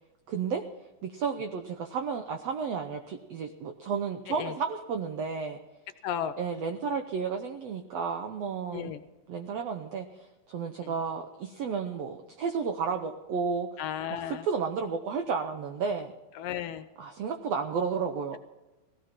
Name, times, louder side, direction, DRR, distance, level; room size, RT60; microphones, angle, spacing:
voice 1, 0.3-0.6 1.0-5.6 6.4-9.0 9.3-10.1 10.5-13.8 14.1-16.1 17.0-18.4, right 5 dB, 85° right, 6 dB, 1.4 m, -32 dB
voice 2, 6.0-6.3 8.7-9.0 10.8-10.9 13.8-14.5 16.4-16.9, left 10 dB, 75° left, 10 dB, 2.2 m, -34 dB
19.0 x 16.0 x 4.4 m, 1.1 s
omnidirectional pair, 4.2 m